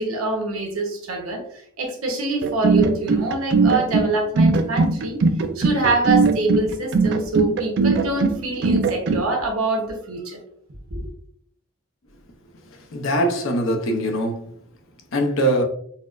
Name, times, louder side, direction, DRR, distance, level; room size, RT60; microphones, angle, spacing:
voice 1, 0.0-5.2 5.5-10.4 10.9-11.1, right 2 dB, 90° right, 0.9 m, -25 dB
sound 1, 2.4-9.2, right 4 dB, 50° right, 0.3 m, -19 dB
voice 2, 12.9-14.5 15.1-15.6, right 1 dB, 70° left, 0.6 m, -22 dB
4.1 x 2.0 x 2.4 m
head